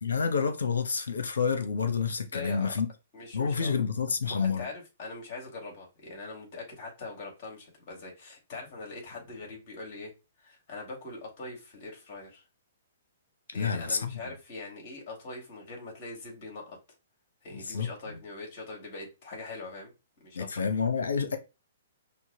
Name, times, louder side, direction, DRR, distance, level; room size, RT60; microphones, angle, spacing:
voice 1, 0.0-2.9 3.3-4.7 13.5-14.2 17.6-18.2 20.3-21.4, left 5 dB, 75° left, 0.8 m, -29 dB
voice 2, 2.3-2.7 3.1-3.7 4.2-10.1 10.4-12.4 13.5-16.8 17.4-19.9 20.2-20.7, left 3 dB, 45° left, 2.4 m, -42 dB
5.6 x 2.2 x 2.8 m
hypercardioid pair, 125°, 0 cm